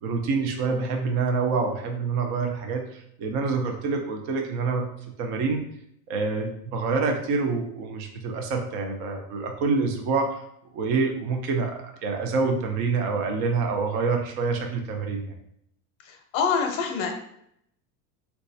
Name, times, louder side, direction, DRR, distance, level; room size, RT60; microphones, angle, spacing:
voice 1, 0.0-4.8 5.2-5.6 6.1-10.4 10.7-15.3, right 4 dB, 35° right, 3 dB, 0.4 m, -26 dB
voice 2, 16.0-17.1, left 6 dB, 55° left, 3 dB, 0.7 m, -26 dB
4.0 x 2.3 x 2.6 m, 0.72 s
supercardioid pair, 155°, 47 cm